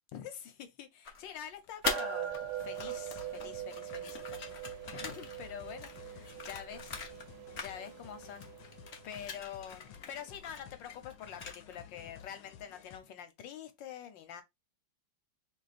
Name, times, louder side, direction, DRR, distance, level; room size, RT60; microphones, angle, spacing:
voice 1, 0.1-7.0 7.6-8.5 9.0-14.4, left 9 dB, 70° left, 1.5 m, -46 dB
sound 1, 1.1-2.4 2.7-7.3 7.5-8.2 8.4-11.8, left 5 dB, 55° left, 0.7 m, -43 dB
sound 2, 1.8-9.5, right 9 dB, 70° right, 1.3 m, -42 dB
sound 3, 2.5-13.0, left 9 dB, 85° left, 1.4 m, -55 dB
3.3 x 2.8 x 4.1 m
omnidirectional pair, 2.1 m